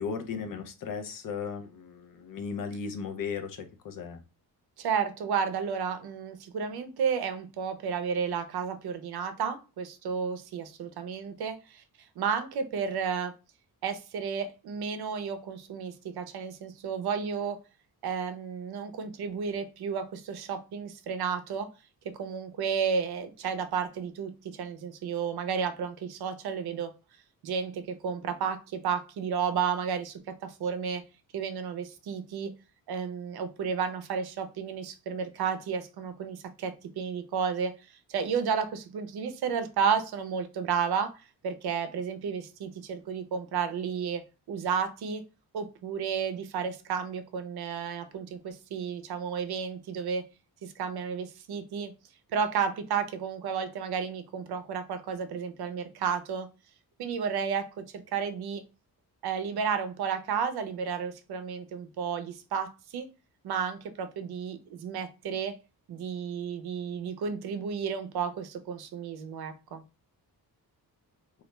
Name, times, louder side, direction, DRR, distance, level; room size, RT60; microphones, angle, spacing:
voice 1, 0.0-4.2, left 6 dB, 60° left, 7 dB, 0.5 m, -36 dB
voice 2, 4.8-11.8 12.2-13.3 13.8-17.6 18.0-21.7 22.2-26.9 27.4-31.0 31.3-32.5 32.9-37.7 38.1-41.1 41.4-44.2 44.5-45.2 45.5-50.2 50.6-51.9 52.3-56.5 57.0-57.6 58.1-58.6 59.2-63.1 63.4-65.5 65.9-69.8, right 6 dB, 75° right, 9 dB, 0.5 m, -32 dB
2.3 x 2.2 x 3.0 m, 0.29 s
wide cardioid pair, 140°, 38 cm